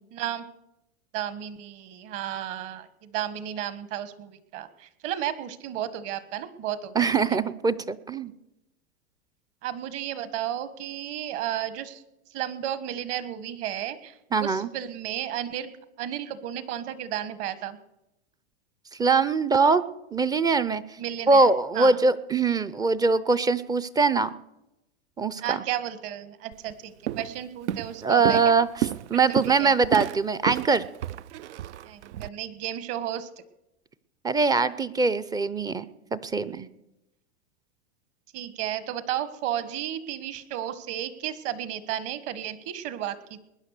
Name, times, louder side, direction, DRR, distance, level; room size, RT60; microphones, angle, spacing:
voice 1, 0.1-0.5 1.1-7.4 9.6-12.0 12.3-15.7 16.0-17.8 21.0-22.0 25.4-28.5 29.6-29.7 31.8-33.3 38.3-43.4, right 11 dB, 45° right, 14 dB, 1.5 m, -33 dB
voice 2, 7.0-8.3 14.3-14.7 19.0-19.8 20.1-20.8 21.3-24.3 25.2-25.6 28.0-30.9 34.2-35.8 36.1-36.7, right 4 dB, 10° right, 15 dB, 0.5 m, -22 dB
Walk footsteps, 26.5-26.7 27.1-27.4 27.7-32.3, right 12 dB, 75° right, 0.6 m, -31 dB
20.5 x 10.0 x 6.6 m, 0.89 s
hypercardioid pair, 120°, 34 cm